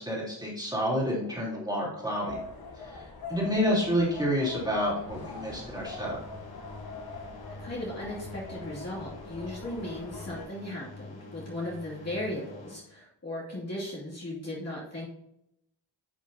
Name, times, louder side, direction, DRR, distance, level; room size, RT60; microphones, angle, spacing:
voice 1, 0.0-2.4 2.8-6.2, equal, 10° right, -5 dB, 3.4 m, -29 dB
sound 1, 2.3-10.5, left 3 dB, 55° left, 1.6 m, -43 dB
sound 2, 5.1-12.8, left 2 dB, 80° left, 2.1 m, -47 dB
voice 2, 7.6-15.1, left 1 dB, 35° left, -6 dB, 2.6 m, -37 dB
10.0 x 6.5 x 2.8 m, 0.79 s
wide cardioid pair, 135°, 44 cm